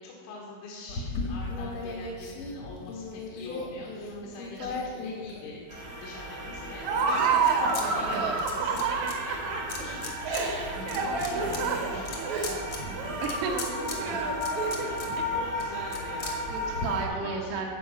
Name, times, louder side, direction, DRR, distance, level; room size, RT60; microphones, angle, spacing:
voice 1, 0.0-8.7 9.2-12.7 13.5-13.6 14.1-14.3 15.3-16.5 17.1-17.6, left 3 dB, 85° left, -3 dB, 3.8 m, -45 dB
sound 1, 0.9-5.9 6.5-7.8 8.1-9.1 9.7-10.4 10.8-16.9, left 3 dB, 65° left, 1.6 m, -38 dB
sound 2, 5.7-17.0, left 1 dB, 45° right, 0.9 m, -36 dB
Laughter, 6.8-15.1, right 4 dB, 70° right, 1.8 m, -29 dB
voice 2, 8.0-8.4 13.2-13.6 15.2-15.3 16.5-17.7, right 5 dB, 85° right, 1 dB, 3.7 m, -32 dB
13.5 x 4.9 x 7.7 m, 2.3 s
omnidirectional pair, 5.4 m